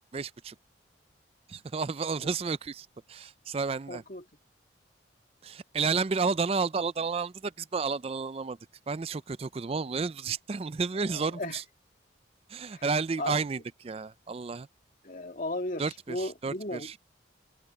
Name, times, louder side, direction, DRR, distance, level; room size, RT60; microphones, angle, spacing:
voice 1, 0.1-0.6 1.5-4.0 5.4-8.6 8.9-11.6 12.5-14.7 15.8-17.0, right 4 dB, 30° right, 0.4 m, -31 dB
voice 2, 3.9-4.2 11.1-11.6 12.7-12.8 13.2-13.4 15.0-17.0, left 1 dB, 45° left, 2.2 m, -36 dB
open air
head